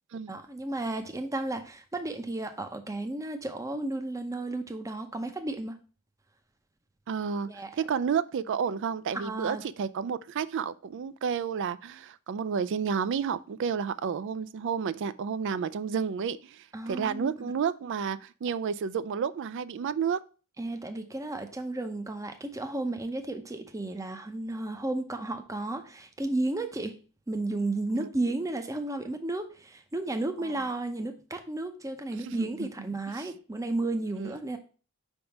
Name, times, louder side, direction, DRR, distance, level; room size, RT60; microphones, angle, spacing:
voice 1, 0.3-5.8 7.5-7.7 9.1-9.6 16.7-17.5 20.6-26.9 27.3-34.6, right 2 dB, 15° right, 0.6 m, -33 dB
voice 2, 7.1-20.2 27.9-28.1 30.4-30.6 32.2-32.7 33.1-33.3 34.2-34.4, right 6 dB, 55° right, 0.3 m, -31 dB
5.2 x 3.6 x 5.7 m
head